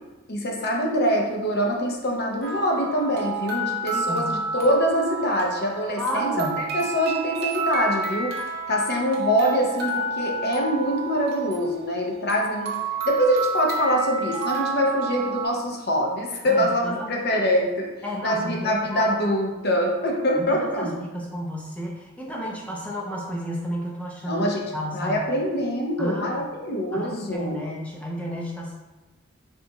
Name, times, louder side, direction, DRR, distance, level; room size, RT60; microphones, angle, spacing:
voice 1, 0.3-8.3 8.7-12.7 13.1-17.9 18.2-20.9 24.3-24.6 24.9-27.6, equal, 50° left, 0 dB, 0.7 m, -24 dB
sound 1, 2.4-15.5, right 3 dB, 50° right, 0.8 m, -30 dB
voice 2, 3.9-4.3 6.0-6.6 16.5-17.1 18.0-19.1 20.5-25.3 26.0-26.4 26.9-28.7, equal, 5° left, -3 dB, 0.6 m, -32 dB
4.9 x 2.5 x 3.8 m, 1.2 s
head